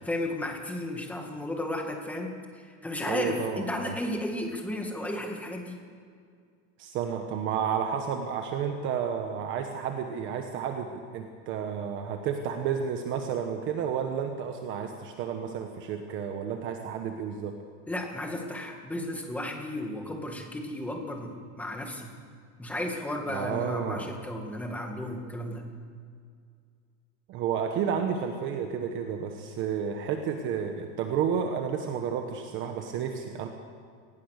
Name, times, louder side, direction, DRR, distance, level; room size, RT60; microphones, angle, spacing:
voice 1, 0.0-5.8 17.9-22.1 22.6-25.6, left 1 dB, 5° left, 2 dB, 2.1 m, -34 dB
voice 2, 3.1-3.9 6.8-17.6 23.3-24.1 27.3-33.5, right 7 dB, 30° right, 4 dB, 1.3 m, -31 dB
27.0 x 20.0 x 6.7 m, 2.2 s
supercardioid pair, 175°, 37 cm